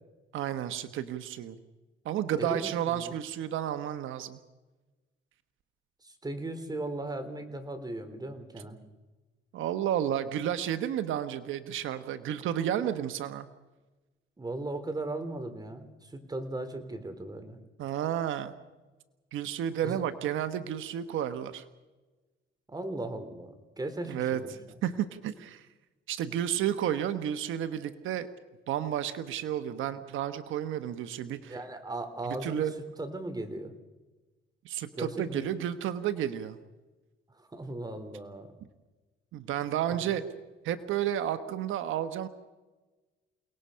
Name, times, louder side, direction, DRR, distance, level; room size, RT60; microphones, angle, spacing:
voice 1, 0.3-1.6 2.0-4.4 9.5-13.5 17.8-18.6 19.3-21.6 24.0-25.7 26.1-28.3 28.7-31.6 32.4-32.7 34.6-36.6 39.3-40.2 40.6-42.3, right 10 dB, 85° right, 10 dB, 1.2 m, -31 dB
voice 2, 2.4-3.1 6.0-8.8 12.8-13.0 14.4-17.6 19.8-20.0 22.7-24.5 31.5-32.7 33.0-33.7 35.0-35.5 37.4-38.5 40.0-40.2, right 2 dB, 20° right, 8 dB, 3.6 m, -37 dB
29.0 x 19.0 x 5.7 m, 1.2 s
cardioid pair, 90°, 20 cm